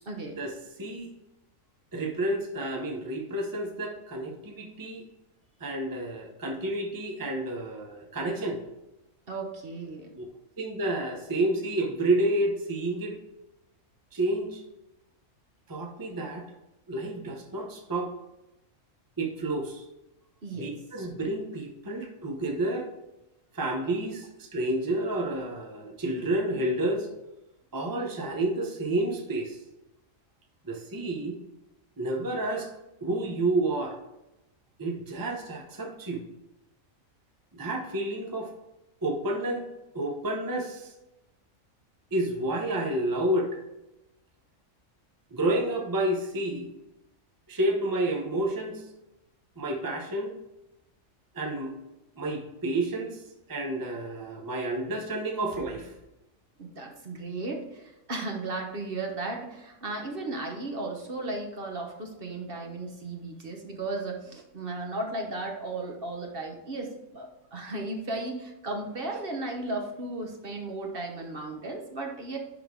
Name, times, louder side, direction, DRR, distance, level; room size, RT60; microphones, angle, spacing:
voice 1, 0.1-0.4 9.3-10.1 20.4-20.7 56.6-72.4, right 2 dB, 50° right, 2 dB, 1.1 m, -35 dB
voice 2, 0.8-1.1 1.9-5.1 5.6-8.6 10.1-10.2 10.6-13.2 14.1-14.6 15.7-16.5 16.9-18.1 19.2-19.8 20.5-22.9 23.5-27.1 27.7-29.6 30.6-31.4 32.0-32.7 33.0-34.0 34.8-36.2 37.5-38.5 39.0-39.7 39.9-40.9 42.1-43.6 45.3-46.7 47.5-48.8 49.6-50.4 51.3-51.8 52.2-53.2 53.5-55.9, right 1 dB, 20° right, 1 dB, 0.7 m, -30 dB
10.5 x 3.8 x 3.7 m, 0.95 s
omnidirectional pair, 1.4 m